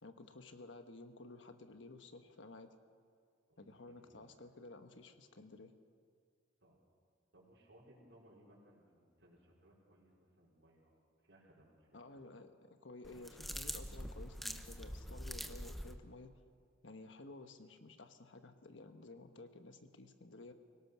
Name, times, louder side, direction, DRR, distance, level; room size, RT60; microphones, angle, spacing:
voice 1, 0.0-2.7 3.6-5.7 11.9-16.3 16.8-20.5, left 2 dB, 80° left, 7 dB, 1.3 m, -54 dB
voice 2, 3.9-4.3 6.6-6.8 7.3-12.2, right 1 dB, 70° right, -5 dB, 4.4 m, -65 dB
sound 1, 13.0-15.9, equal, ahead, 0.9 m, -44 dB
24.5 x 17.5 x 6.2 m, 2.1 s
head